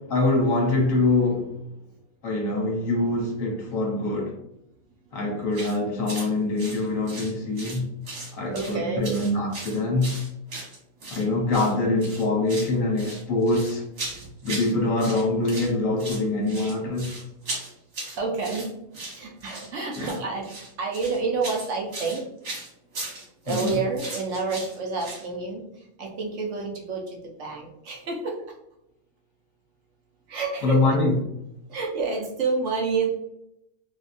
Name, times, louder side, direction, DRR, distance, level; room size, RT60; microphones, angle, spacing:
voice 1, 0.0-1.6 2.2-4.4 5.1-7.9 8.3-10.2 11.1-13.8 14.4-17.1 20.0-20.2 23.5-23.8 30.6-31.2, left 2 dB, 70° left, 1.3 m, -24 dB
sound 1, 5.5-5.8 6.1-6.3 6.6-7.8 8.1-8.8 9.0-11.2 11.5-11.7 12.0-12.7 13.0-14.7 15.0-15.7 16.0-25.3, right 2 dB, 85° right, 1.7 m, -37 dB
voice 2, 8.5-9.2 18.1-18.7 19.1-20.5 20.8-22.2 23.5-25.6 26.0-28.3 30.3-30.9 31.7-33.1, right 4 dB, 65° right, 0.9 m, -29 dB
3.4 x 2.7 x 2.5 m
omnidirectional pair, 1.5 m